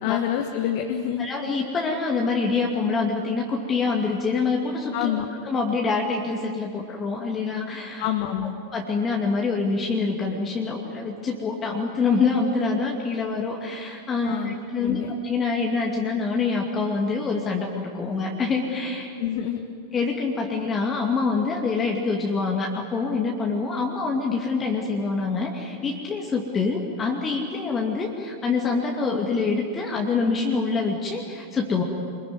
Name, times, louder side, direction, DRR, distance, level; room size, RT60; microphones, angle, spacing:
voice 1, 0.0-1.3 4.9-5.3 8.0-8.5 14.2-15.1 19.2-19.6, left 10 dB, 50° left, 5 dB, 1.6 m, -27 dB
voice 2, 1.2-8.1 8.7-19.1 19.9-31.8, left 4 dB, 20° left, 0 dB, 2.6 m, -25 dB
26.5 x 22.0 x 9.8 m, 2.4 s
figure-of-eight pair, 90°, 0 cm